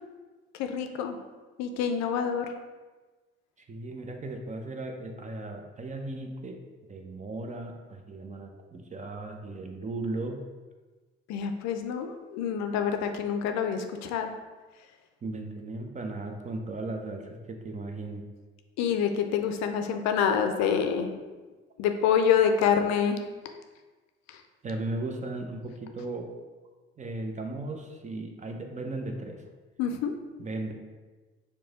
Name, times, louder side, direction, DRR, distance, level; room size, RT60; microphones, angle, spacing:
voice 1, 0.5-1.2 1.6-2.5 11.3-14.3 18.8-21.1 21.8-23.2 24.3-24.4 29.8-30.1, left 7 dB, 60° left, 6 dB, 0.5 m, -26 dB
voice 2, 3.7-6.6 6.9-10.4 15.2-18.2 24.6-26.3 27.0-29.4 30.4-30.7, right 2 dB, 25° right, 3 dB, 0.6 m, -36 dB
4.6 x 2.2 x 3.9 m, 1.3 s
figure-of-eight pair, 50°, 32 cm